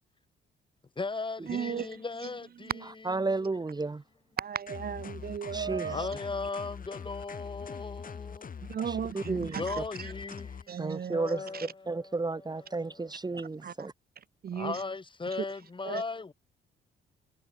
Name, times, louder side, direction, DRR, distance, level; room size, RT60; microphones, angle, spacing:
voice 1, 1.0-3.1 5.8-8.5 9.5-12.2 12.5-13.1 14.5-16.3, left 3 dB, 25° left, 2.9 m, -37 dB
voice 2, 1.5-1.9 2.6-2.9 4.4-6.1 8.6-10.1 10.7-11.2 11.5-11.7 13.6-13.7 14.4-14.8 15.8-16.0, right 8 dB, 50° right, 1.5 m, -35 dB
voice 3, 3.0-4.0 5.5-6.1 8.9-9.8 10.8-11.5 11.9-13.9, right 3 dB, 20° right, 1.7 m, -33 dB
sound 1, 4.7-10.6, left 6 dB, 45° left, 5.4 m, -43 dB
cardioid pair, 90°, 20 cm